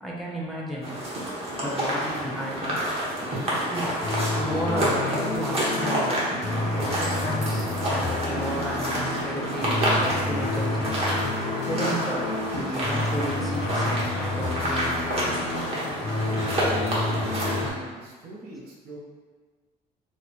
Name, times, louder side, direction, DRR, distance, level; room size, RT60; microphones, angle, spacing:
voice 1, 0.0-0.9 1.6-2.9 3.7-6.3 6.8-11.0 11.7-15.0, equal, ahead, -4 dB, 0.7 m, -33 dB
sound 1, 0.8-17.7, equal, 35° right, 1.0 m, -28 dB
sound 2, 4.0-17.7, left 2 dB, 40° left, 0.6 m, -30 dB
voice 2, 16.2-17.1 17.6-19.0, right 2 dB, 70° right, -4 dB, 0.8 m, -43 dB
3.0 x 2.1 x 4.1 m, 1.4 s
cardioid pair, 110°, 17 cm